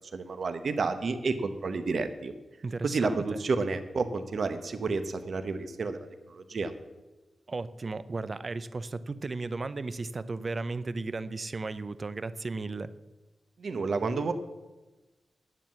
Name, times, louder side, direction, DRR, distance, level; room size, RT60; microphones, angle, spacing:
voice 1, 0.1-2.3 2.8-6.0 6.3-6.7 13.6-14.3, right 4 dB, 60° right, 9 dB, 0.9 m, -30 dB
voice 2, 2.6-3.4 7.5-12.9, right 3 dB, 40° right, 14 dB, 0.5 m, -35 dB
9.9 x 7.5 x 7.5 m, 1.1 s
wide cardioid pair, 105°, 0 cm